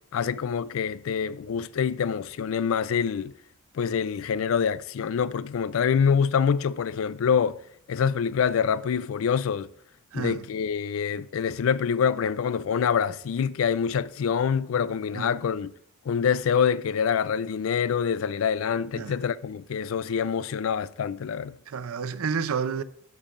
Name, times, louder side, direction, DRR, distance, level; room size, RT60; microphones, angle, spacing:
voice 1, 0.1-3.3 3.7-7.6 7.9-9.7 10.1-15.7 16.1-21.6, left 7 dB, 75° left, 0.4 m, -26 dB
voice 2, 10.1-10.4 15.1-15.3 19.0-19.2 21.7-22.8, right 6 dB, 85° right, 0.5 m, -30 dB
12.0 x 7.2 x 2.5 m
head